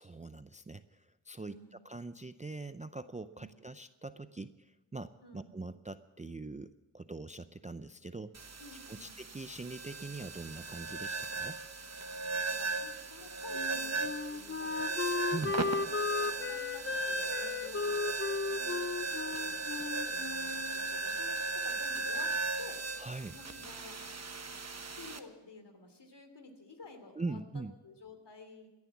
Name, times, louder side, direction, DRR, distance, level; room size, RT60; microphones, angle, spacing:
voice 1, 0.0-8.5 8.9-11.6 15.3-15.5 23.0-23.4 27.2-27.7, right 3 dB, 15° right, 12 dB, 0.5 m, -43 dB
voice 2, 1.4-1.8 3.3-3.5 5.2-5.5 8.6-9.2 12.4-15.7 16.2-18.0 18.4-18.9 19.2-22.8 23.3-24.0 24.9-28.7, left 3 dB, 55° left, 7 dB, 3.0 m, -52 dB
sound 1, 8.3-25.2, right 3 dB, 30° right, 1.2 m, -37 dB
Wind instrument woodwind instrument, 13.5-21.0, left 4 dB, 25° left, 0.7 m, -35 dB
17.5 x 10.5 x 7.2 m, 1.1 s
cardioid pair, 55°, 50 cm